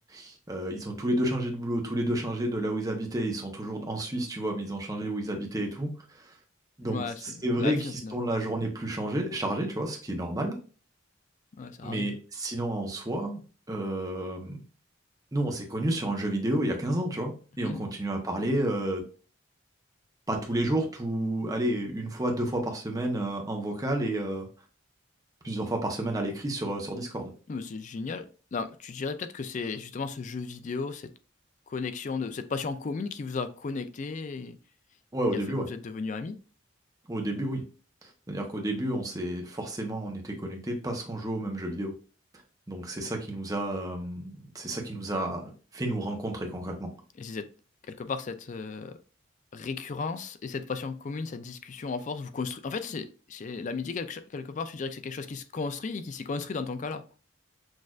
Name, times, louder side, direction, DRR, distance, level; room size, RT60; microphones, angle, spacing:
voice 1, 0.1-6.3 6.8-10.6 11.8-13.4 13.7-14.6 15.3-19.0 20.3-24.5 25.4-27.3 35.1-35.7 37.1-37.6 38.0-41.9 42.7-46.9, right 1 dB, 20° right, 0.8 m, -31 dB
voice 2, 6.9-8.1 11.6-12.2 17.6-17.9 27.5-28.3 28.5-31.1 31.7-34.6 35.7-36.4 47.2-47.5 47.9-49.0 49.5-57.0, left 4 dB, 40° left, 0.3 m, -35 dB
6.2 x 2.5 x 2.4 m
head